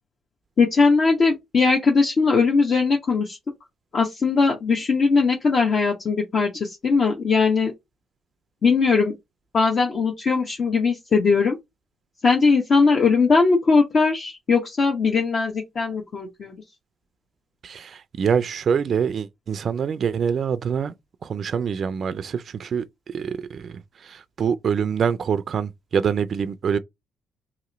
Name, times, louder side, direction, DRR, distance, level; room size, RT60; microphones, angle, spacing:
voice 1, 0.6-3.4 3.9-7.7 8.6-9.2 9.5-11.6 12.2-16.6, left 4 dB, 50° left, 0.8 m, -20 dB
voice 2, 17.6-20.9 21.2-26.8, right 7 dB, 55° right, 0.3 m, -25 dB
2.9 x 2.9 x 3.9 m
cardioid pair, 90°, 0 cm